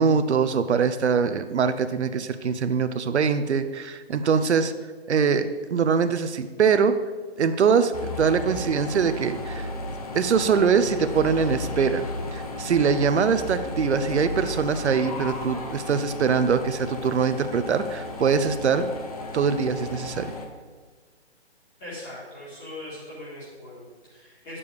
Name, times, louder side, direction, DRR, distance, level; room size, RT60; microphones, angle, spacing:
voice 1, 0.0-4.7 5.1-6.9 7.4-9.7 10.1-12.0 12.3-18.9 19.3-20.3, right 6 dB, 80° right, 10 dB, 0.7 m, -23 dB
sound 1, 7.9-20.5, left 2 dB, 35° left, 0.8 m, -34 dB
voice 2, 21.8-24.6, left 1 dB, 15° left, -8 dB, 2.3 m, -40 dB
9.9 x 6.8 x 3.5 m, 1.4 s
hypercardioid pair, 170°, 33 cm